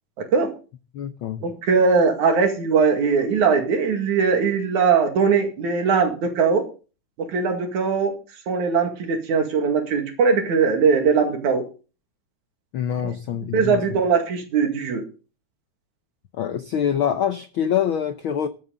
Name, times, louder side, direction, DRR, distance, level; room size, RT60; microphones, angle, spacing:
voice 1, 0.2-0.5 1.4-6.6 7.2-8.1 8.5-11.6 13.0-13.1 13.5-15.0, right 5 dB, 75° right, 3.5 m, -20 dB
voice 2, 0.9-1.5 12.7-14.0 16.3-18.5, left 9 dB, 80° left, 1.1 m, -25 dB
14.5 x 11.0 x 4.0 m
omnidirectional pair, 3.4 m